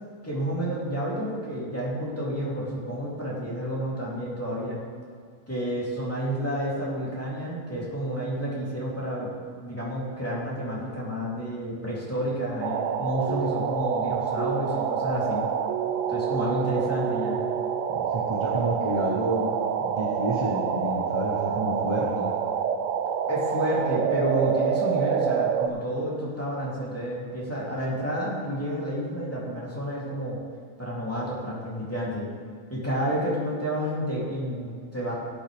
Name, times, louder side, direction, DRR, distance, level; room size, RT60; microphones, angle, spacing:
voice 1, 0.2-4.8 5.5-9.3 9.6-15.4 16.1-17.4 23.3-30.4 30.8-32.2 32.7-35.1, equal, 10° left, -7 dB, 3.1 m, -30 dB
sound 1, 12.6-25.7, right 8 dB, 75° right, 1.0 m, -27 dB
voice 2, 17.9-22.3, right 1 dB, 25° right, -2 dB, 1.1 m, -29 dB
17.5 x 8.7 x 3.5 m, 2.1 s
omnidirectional pair, 1.3 m